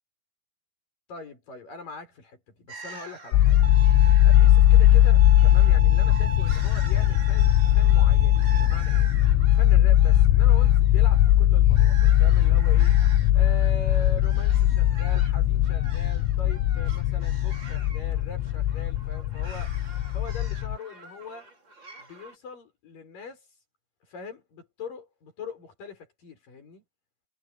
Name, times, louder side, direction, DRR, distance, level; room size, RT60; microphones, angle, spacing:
voice 1, 1.1-3.6 4.2-9.1 9.5-19.7 20.1-21.5 22.0-23.4 24.1-26.8, left 3 dB, 45° left, 7.3 m, -42 dB
sound 1, 2.7-22.4, right 3 dB, 25° right, 4.9 m, -47 dB
sound 2, 3.3-20.8, left 13 dB, 85° left, 3.6 m, -19 dB
Bowed string instrument, 3.6-8.7, right 3 dB, 40° right, 4.4 m, -38 dB
omnidirectional pair, 5.7 m